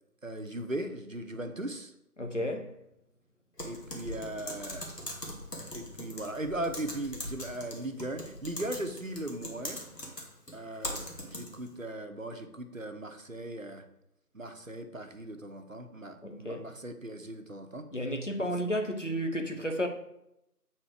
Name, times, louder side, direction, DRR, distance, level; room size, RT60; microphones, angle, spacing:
voice 1, 0.2-1.9 3.6-4.9 5.7-9.8 10.5-13.8 14.3-17.9 18.4-18.5, right 1 dB, 55° right, 0.8 m, -38 dB
voice 2, 2.2-2.7 16.2-16.6 17.9-19.9, equal, 50° left, 0.9 m, -32 dB
Typing, 3.6-11.7, left 1 dB, 85° left, 2.1 m, -41 dB
7.4 x 4.4 x 4.7 m
figure-of-eight pair, 175°, 47 cm